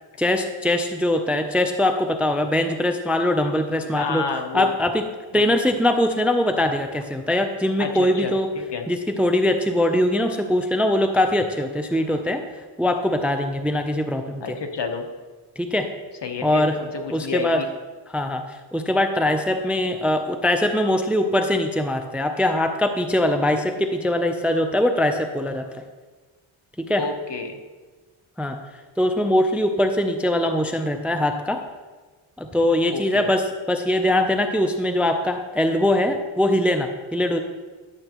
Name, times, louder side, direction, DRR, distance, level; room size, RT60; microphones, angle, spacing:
voice 1, 0.2-4.2 4.5-5.0 5.3-8.5 8.9-12.4 12.8-14.4 15.6-15.9 16.4-16.8 17.1-17.6 18.1-18.4 18.7-25.7 26.8-27.0 28.4-28.6 29.0-31.6 32.4-37.4, left 1 dB, 5° right, 6 dB, 0.5 m, -22 dB
voice 2, 3.8-4.7 5.3-5.4 7.8-8.9 14.4-15.1 16.2-17.7 27.0-27.6 32.9-33.3, left 5 dB, 55° left, 5 dB, 1.1 m, -30 dB
11.5 x 7.6 x 3.0 m, 1.3 s
cardioid pair, 85°, 50 cm